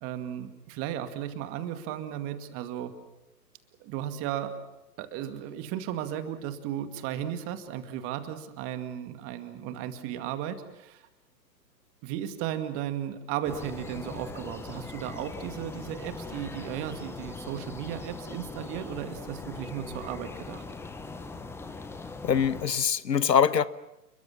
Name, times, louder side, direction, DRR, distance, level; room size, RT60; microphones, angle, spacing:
voice 1, 0.0-2.9 3.8-4.5 5.0-11.1 12.0-20.6, right 10 dB, 25° right, 9 dB, 2.2 m, -35 dB
sound 1, 13.4-22.6, left 3 dB, 5° left, 1.1 m, -41 dB
voice 2, 22.2-23.6, left 7 dB, 80° left, 17 dB, 1.3 m, -23 dB
29.0 x 22.0 x 7.3 m, 0.94 s
hypercardioid pair, 130°, 49 cm